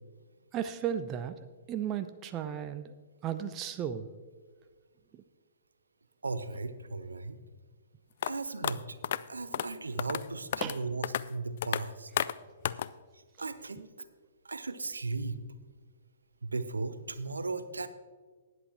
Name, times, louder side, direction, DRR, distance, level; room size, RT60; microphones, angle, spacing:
voice 1, 0.5-1.4 1.7-2.9 3.2-4.1 10.6-10.8, right 9 dB, 25° right, 10 dB, 0.5 m, -34 dB
voice 2, 6.2-7.4 8.2-9.0 9.3-12.1 13.1-14.1 14.4-15.4 16.4-17.9, right 3 dB, 70° right, 12 dB, 0.7 m, -36 dB
sound 1, 8.2-8.3 8.6-8.7 9.0-9.2 9.5-9.7 10.0-10.2 10.5-10.8 11.0-11.2 11.6-11.8 12.2-12.3 12.6-12.9, left 10 dB, 45° left, 0.3 m, -30 dB
19.0 x 8.0 x 3.0 m, 1.5 s
figure-of-eight pair, 120°, 0 cm